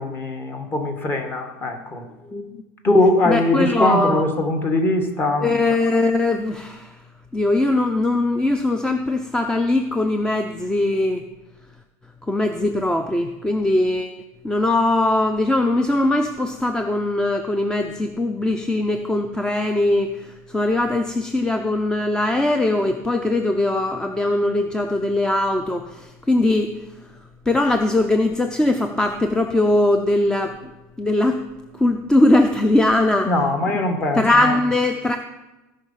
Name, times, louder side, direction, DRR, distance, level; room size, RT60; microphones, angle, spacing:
voice 1, 0.0-2.1 2.8-5.5 33.2-34.6, left 2 dB, 25° left, 4 dB, 1.9 m, -21 dB
voice 2, 3.3-4.2 5.4-6.9 7.3-11.2 12.3-14.2 14.4-26.8 27.5-30.7 31.0-31.4 31.8-33.3 34.1-35.2, left 2 dB, 10° left, 6 dB, 0.6 m, -20 dB
16.5 x 5.5 x 5.7 m, 1.0 s
supercardioid pair, 130°, 8 cm